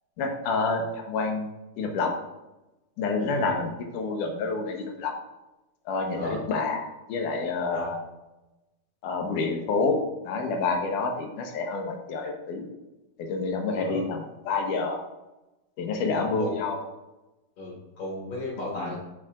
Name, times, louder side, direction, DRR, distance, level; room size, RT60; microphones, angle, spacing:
voice 1, 0.2-1.5 1.8-2.1 3.0-5.1 5.9-8.0 9.0-10.0 10.3-12.7 13.2-15.1 15.8-16.8 18.8-18.9, left 3 dB, 80° left, 3 dB, 2.4 m, -28 dB
voice 2, 3.2-3.5 6.1-6.4 7.7-7.9 13.7-14.0 15.9-16.0 16.3-16.5 17.6-19.0, left 2 dB, 50° left, -6 dB, 2.8 m, -34 dB
8.7 x 6.4 x 2.5 m, 1.0 s
omnidirectional pair, 3.7 m